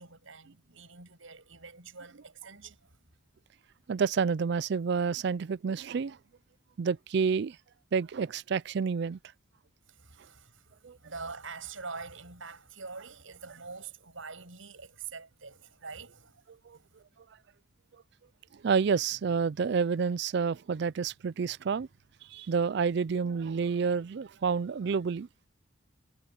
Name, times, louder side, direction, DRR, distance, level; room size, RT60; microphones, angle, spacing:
voice 1, 0.0-3.0 9.9-16.4 16.7-17.0, right 4 dB, 70° right, 6.4 m, -45 dB
voice 2, 3.9-6.2 6.8-7.6 7.9-9.2 10.8-11.0 16.7-16.8 18.6-21.9 22.3-25.3, right 5 dB, 55° right, 0.4 m, -29 dB
head